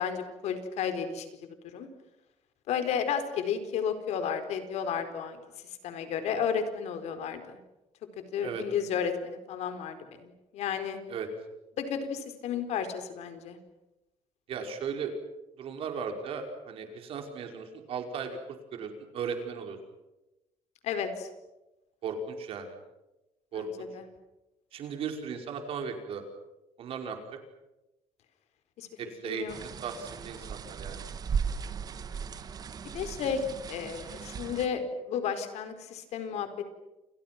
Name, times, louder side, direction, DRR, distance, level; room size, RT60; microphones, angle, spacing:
voice 1, 0.0-1.9 2.7-5.4 5.8-7.6 8.3-11.0 11.8-13.6 20.8-21.3 23.5-24.0 28.8-28.9 29.2-29.6 32.9-33.4 33.7-36.6, left 7 dB, 65° left, 8 dB, 4.5 m, -33 dB
voice 2, 14.5-15.1 15.6-18.4 18.7-19.8 22.0-22.8 23.5-23.9 24.7-26.2 26.8-27.2 29.0-31.0, right 6 dB, 50° right, 5 dB, 5.3 m, -36 dB
sound 1, 29.5-34.7, right 6 dB, 30° right, 1.5 m, -37 dB
30.0 x 29.0 x 6.1 m, 0.99 s
cardioid pair, 165°, 12 cm